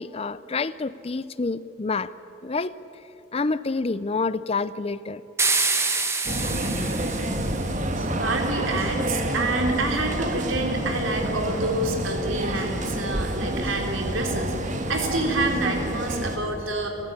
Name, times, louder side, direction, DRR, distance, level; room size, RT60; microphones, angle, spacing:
voice 1, 0.0-2.1 2.4-2.7 3.3-5.2, left 3 dB, 30° left, 16 dB, 0.5 m, -28 dB
sound 1, 5.4-7.8, right 3 dB, 15° right, 1.4 m, -26 dB
sound 2, 6.3-16.4, right 1 dB, 35° right, 1.7 m, -28 dB
voice 2, 8.0-16.9, right 2 dB, 75° right, 2 dB, 3.8 m, -28 dB
29.0 x 14.0 x 9.7 m, 2.9 s
head